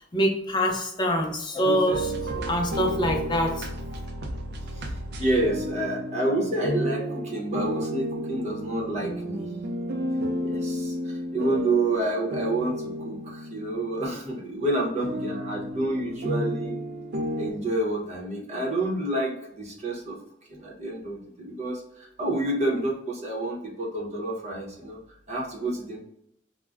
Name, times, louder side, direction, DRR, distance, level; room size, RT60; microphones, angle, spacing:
voice 1, 0.1-3.7, equal, 25° left, 2 dB, 0.4 m, -25 dB
sound 1, 1.9-14.5 15.0-17.5, equal, 60° right, 0.4 m, -32 dB
voice 2, 4.7-9.5 10.4-16.8 17.4-20.2 20.5-25.0 25.3-26.0, right 1 dB, 35° right, -2 dB, 0.8 m, -29 dB
2.4 x 2.1 x 3.3 m, 0.77 s
head